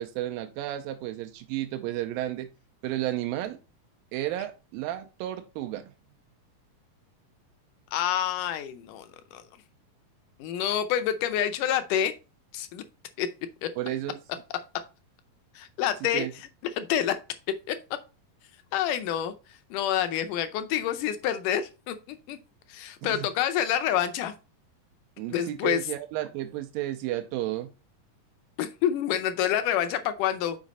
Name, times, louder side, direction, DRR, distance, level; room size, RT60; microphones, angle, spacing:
voice 1, 0.0-2.5 2.8-3.6 4.1-5.9 13.8-14.2 16.1-16.3 23.0-23.3 25.2-27.7, right 14 dB, 85° right, 2.3 m, -32 dB
voice 2, 7.9-9.4 10.4-12.1 12.5-12.8 13.2-13.3 13.6-13.7 15.6-16.2 16.8-17.2 17.7-17.8 18.7-19.3 19.7-22.4 22.7-24.3 25.3-25.8 28.6-30.6, left 10 dB, 80° left, 1.9 m, -27 dB
6.1 x 4.9 x 4.0 m
omnidirectional pair, 4.0 m